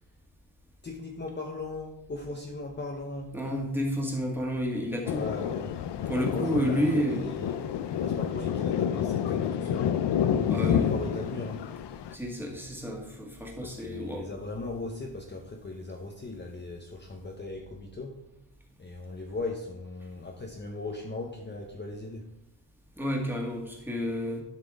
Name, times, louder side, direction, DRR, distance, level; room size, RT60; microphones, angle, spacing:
voice 1, 0.8-3.8 5.1-5.8 6.3-7.7 8.0-11.6 13.6-18.2 18.8-22.3, left 2 dB, 25° left, 1 dB, 0.9 m, -38 dB
voice 2, 3.3-5.2 6.1-7.3 10.5-10.8 12.1-14.3 23.0-24.4, equal, 5° right, 0 dB, 1.8 m, -30 dB
Thunder, 5.1-12.1, left 9 dB, 70° left, 0.6 m, -29 dB
11.5 x 5.9 x 3.6 m, 0.89 s
wide cardioid pair, 145°, 43 cm